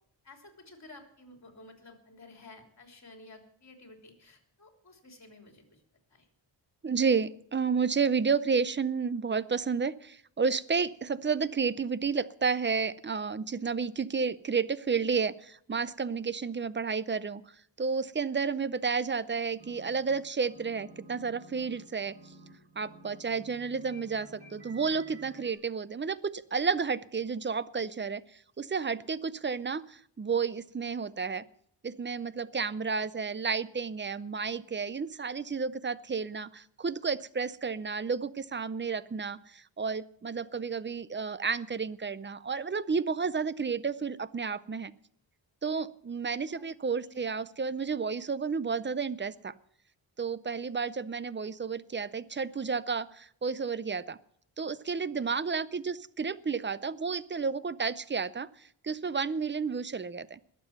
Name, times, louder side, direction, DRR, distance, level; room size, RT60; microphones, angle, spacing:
voice 1, 0.2-5.8 6.1-6.3 46.5-46.7 47.0-47.2, left 2 dB, 35° left, 3 dB, 3.4 m, -53 dB
voice 2, 6.8-17.4 17.8-22.2 22.8-31.4 31.8-44.9 45.6-49.5 50.2-54.2 54.6-60.4, right 5 dB, 25° right, 17 dB, 0.5 m, -31 dB
sound 1, 19.6-20.2 20.5-25.5, right 2 dB, 60° right, 5.1 m, -52 dB
20.5 x 7.6 x 5.9 m, 0.66 s
wide cardioid pair, 115°, 46 cm